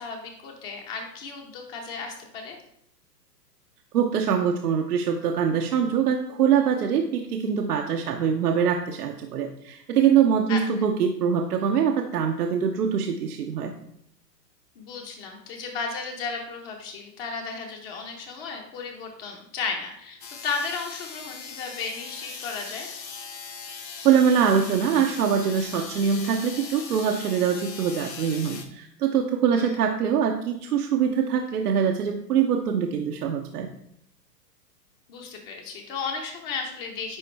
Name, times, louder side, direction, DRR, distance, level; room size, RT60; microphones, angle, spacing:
voice 1, 0.0-2.6 10.5-10.6 14.8-22.9 29.5-29.7 35.1-37.2, left 5 dB, 35° left, 1 dB, 1.2 m, -34 dB
voice 2, 3.9-13.7 24.0-33.7, right 7 dB, 65° right, 3 dB, 0.8 m, -23 dB
sound 1, 20.2-28.7, left 5 dB, 85° left, 1.0 m, -39 dB
9.9 x 3.8 x 3.3 m, 0.71 s
hypercardioid pair, 120°, 50 cm